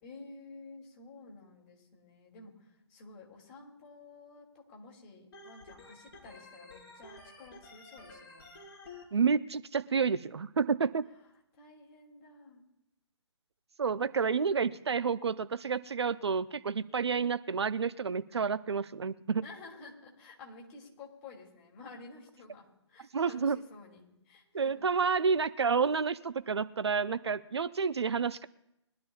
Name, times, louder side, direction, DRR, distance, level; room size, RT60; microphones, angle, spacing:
voice 1, 0.0-8.5 11.5-12.6 19.4-24.9, left 3 dB, 25° left, -1 dB, 2.8 m, -52 dB
Organ, 5.3-9.0, left 3 dB, 55° left, 5.0 m, -51 dB
voice 2, 9.1-11.1 13.8-19.4 23.1-23.6 24.5-28.5, right 5 dB, 65° right, 13 dB, 0.6 m, -29 dB
22.5 x 11.5 x 2.4 m, 0.83 s
figure-of-eight pair, 140°, 15 cm